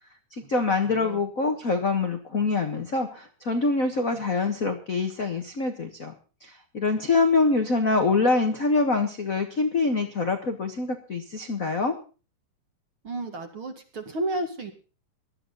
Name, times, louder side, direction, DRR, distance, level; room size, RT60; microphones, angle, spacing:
voice 1, 0.3-11.9, left 3 dB, 55° left, 5 dB, 0.9 m, -25 dB
voice 2, 13.0-14.7, right 2 dB, 40° right, 5 dB, 2.5 m, -32 dB
19.0 x 12.5 x 4.0 m, 0.36 s
omnidirectional pair, 3.9 m